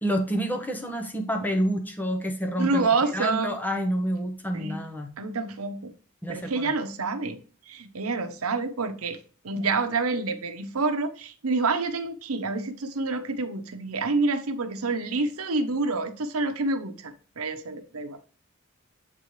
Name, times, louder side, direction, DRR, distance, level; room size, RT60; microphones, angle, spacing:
voice 1, 0.0-2.9 3.1-5.1 6.2-6.7, equal, 10° left, 0.9 m, -28 dB
voice 2, 2.6-3.5 4.5-4.8 5.2-5.9 6.3-7.4 7.7-9.2 9.4-18.2, right 3 dB, 80° right, 0.8 m, -28 dB
8.2 x 3.7 x 3.1 m
head